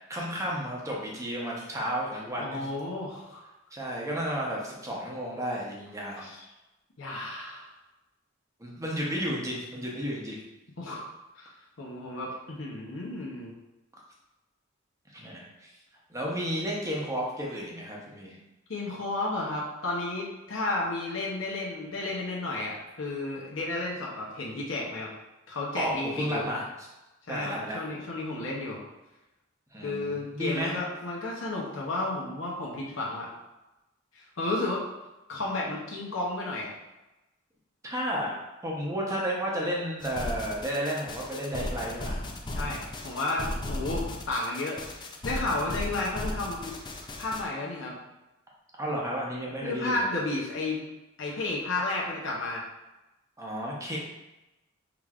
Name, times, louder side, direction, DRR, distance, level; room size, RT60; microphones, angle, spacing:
voice 1, 0.1-2.7 3.7-6.3 8.6-10.4 15.1-15.7 16.1-18.4 25.8-26.9 27.3-27.9 29.7-30.8 37.8-42.2 48.8-50.1 53.4-54.0, equal, 15° right, -3 dB, 0.8 m, -32 dB
voice 2, 2.4-3.4 6.2-6.4 7.0-7.7 10.8-11.1 11.4-11.5 11.8-13.5 18.7-25.1 25.5-26.5 27.3-28.8 29.8-33.3 34.2-34.8 35.3-36.7 42.5-46.7 47.2-48.0 49.6-50.8 51.2-52.7, left 2 dB, 70° left, -3 dB, 0.8 m, -32 dB
sound 1, 40.0-47.4, left 1 dB, 20° left, 0.4 m, -36 dB
5.8 x 3.4 x 2.4 m, 1.0 s
head